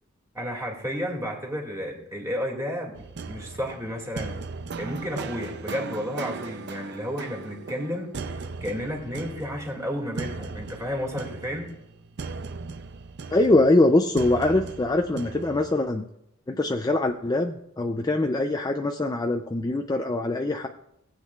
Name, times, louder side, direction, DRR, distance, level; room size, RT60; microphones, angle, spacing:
voice 1, 0.3-2.9 3.3-4.4 4.8-11.7, equal, 15° right, -1 dB, 2.3 m, -32 dB
sound 1, 2.9-15.9, right 4 dB, 55° right, 0.5 m, -38 dB
voice 2, 13.3-16.1 16.5-20.7, left 2 dB, 20° left, 4 dB, 0.4 m, -23 dB
18.5 x 8.2 x 2.4 m, 0.79 s
head